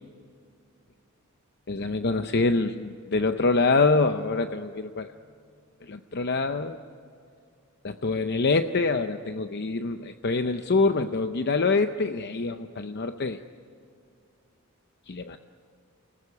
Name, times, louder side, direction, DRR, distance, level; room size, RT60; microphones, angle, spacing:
voice 1, 1.7-5.1 5.8-6.8 7.8-13.4 15.1-15.4, left 3 dB, 50° left, 8 dB, 0.7 m, -25 dB
29.5 x 19.5 x 9.7 m, 2.4 s
head